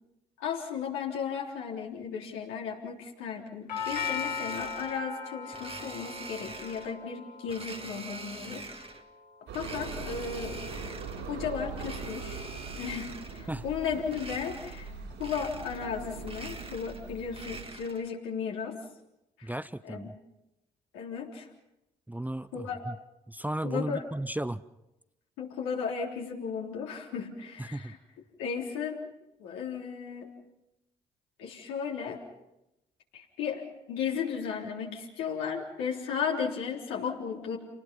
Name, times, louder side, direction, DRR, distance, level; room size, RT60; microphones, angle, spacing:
voice 1, 0.4-8.9 9.5-11.0 11.3-12.5 12.8-14.9 15.2-18.8 19.4-19.5 19.8-20.1 20.9-21.5 22.5-22.8 23.6-24.0 25.4-28.0 28.4-29.0 29.4-30.3 31.4-32.2 33.1-37.6, left 6 dB, 75° left, -1 dB, 3.6 m, -35 dB
Doorbell, 3.7-11.7, left 6 dB, 90° left, 1.3 m, -40 dB
Domestic sounds home sounds, 3.7-5.0 5.5-7.0 7.5-9.0 9.5-11.3 11.7-13.5 14.1-14.9 15.2-15.9 16.2-18.1, right 3 dB, 25° right, 2.0 m, -44 dB
sound 1, 9.5-17.6, right 4 dB, 70° right, 5.7 m, -41 dB
voice 2, 19.4-20.1 22.1-23.0 23.3-24.6 27.6-28.0, right 1 dB, 10° right, 14 dB, 0.8 m, -35 dB
29.0 x 19.5 x 5.5 m, 0.92 s
hypercardioid pair, 40°, 21 cm